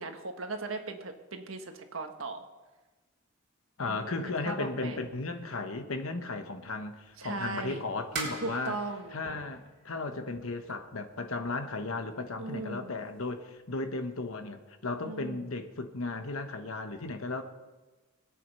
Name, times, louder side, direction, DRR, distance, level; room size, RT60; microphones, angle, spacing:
voice 1, 0.0-2.5 3.9-5.0 7.2-7.8 8.4-9.2 12.4-12.9 15.0-15.4, right 3 dB, 70° right, 5 dB, 1.6 m, -38 dB
voice 2, 3.8-8.8 9.1-17.4, left 3 dB, 85° left, 7 dB, 1.2 m, -35 dB
sound 1, 7.1-11.9 12.3-12.8 13.1-13.3 13.7-13.8, right 3 dB, 55° right, 3.9 m, -42 dB
21.5 x 8.6 x 5.5 m, 1.2 s
head